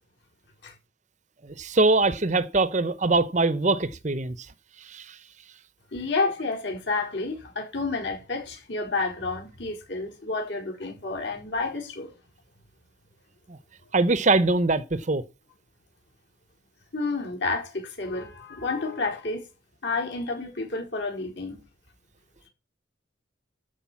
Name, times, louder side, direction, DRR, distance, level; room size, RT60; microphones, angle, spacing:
voice 1, 1.4-4.4 4.9-5.2 13.5-13.6 13.9-15.2, right 3 dB, 35° right, 0.7 m, -23 dB
voice 2, 5.9-12.1 16.9-19.4 19.8-21.6, left 3 dB, 60° left, 4.4 m, -30 dB
13.0 x 5.0 x 7.4 m
head